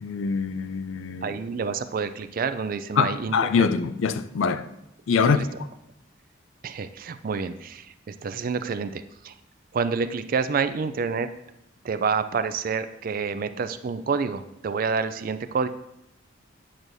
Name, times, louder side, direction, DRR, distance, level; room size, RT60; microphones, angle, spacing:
voice 1, 0.0-1.4 3.0-4.7 5.1-5.4, left 5 dB, 75° left, 0.4 m, -24 dB
voice 2, 1.2-3.7 5.2-5.5 6.6-9.3 9.7-11.3 11.8-15.7, right 5 dB, 45° right, 0.3 m, -28 dB
8.8 x 6.3 x 2.7 m
head